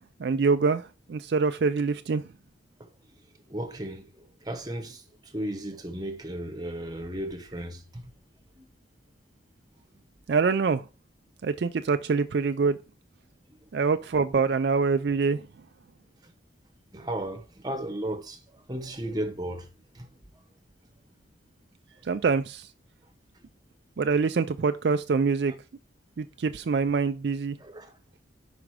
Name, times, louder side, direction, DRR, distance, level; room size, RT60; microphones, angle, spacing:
voice 1, 0.2-2.2 10.3-10.8 11.4-12.8 13.7-15.4 22.0-22.7 24.0-25.5 26.2-27.6, right 4 dB, 60° right, 0.4 m, -25 dB
voice 2, 3.5-4.0 4.5-5.0 5.3-7.8 16.9-18.4 18.7-19.6 27.6-27.9, right 1 dB, 20° right, 1.0 m, -34 dB
5.9 x 5.1 x 4.8 m
head